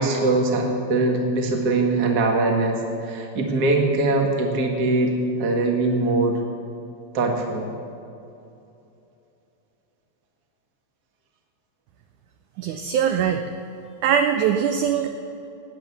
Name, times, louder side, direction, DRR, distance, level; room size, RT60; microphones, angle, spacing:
voice 1, 0.0-6.4 7.1-7.7, right 2 dB, 40° right, 2 dB, 1.4 m, -22 dB
voice 2, 12.6-13.4 14.0-15.1, right 8 dB, 80° right, 6 dB, 1.8 m, -21 dB
18.5 x 9.1 x 7.1 m, 2.8 s
omnidirectional pair, 4.2 m